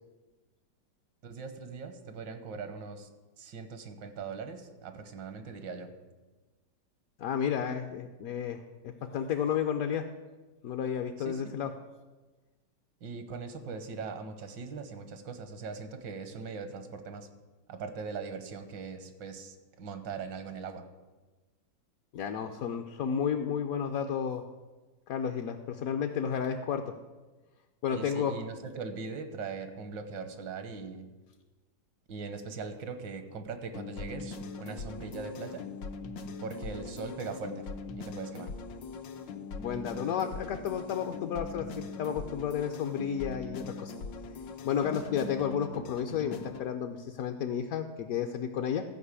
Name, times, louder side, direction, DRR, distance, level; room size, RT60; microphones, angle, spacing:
voice 1, 1.2-5.9 11.2-11.4 13.0-17.3 17.7-20.8 27.9-31.1 32.1-35.7 36.4-37.7 38.0-38.5, right 5 dB, 80° right, 9 dB, 1.7 m, -40 dB
voice 2, 7.2-10.0 10.6-11.7 22.1-24.4 25.1-26.8 27.8-28.3 39.6-43.9 44.6-48.8, left 8 dB, 65° left, 6 dB, 0.9 m, -32 dB
sound 1, 33.7-46.7, left 4 dB, 85° left, 1.5 m, -41 dB
13.5 x 5.4 x 8.2 m, 1.2 s
omnidirectional pair, 2.0 m